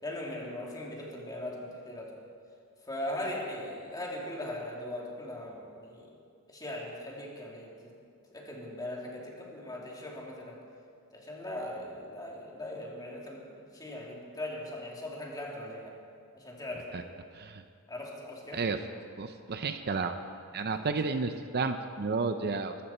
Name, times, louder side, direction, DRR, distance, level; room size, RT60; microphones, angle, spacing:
voice 1, 0.0-2.2 2.8-6.1 6.5-7.9 8.3-10.6 11.1-16.0 16.3-17.1 17.9-18.6, left 1 dB, 15° left, -2 dB, 2.8 m, -39 dB
voice 2, 19.2-20.2 20.5-22.8, right 4 dB, 45° right, 8 dB, 0.6 m, -31 dB
22.5 x 13.5 x 4.4 m, 2.3 s
head